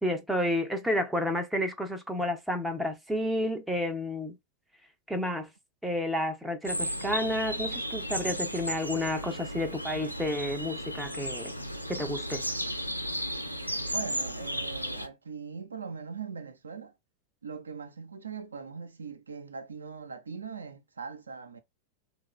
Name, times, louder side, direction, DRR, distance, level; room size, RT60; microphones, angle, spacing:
voice 1, 0.0-4.4 5.1-5.5 5.8-11.5 11.9-12.4, left 1 dB, 5° right, 0.6 m, -31 dB
sound 1, 6.6-15.1, equal, 90° left, 0.3 m, -34 dB
voice 2, 13.9-16.9 17.4-21.6, right 5 dB, 75° right, 0.4 m, -41 dB
3.1 x 2.2 x 3.6 m
figure-of-eight pair, 90°, 0 cm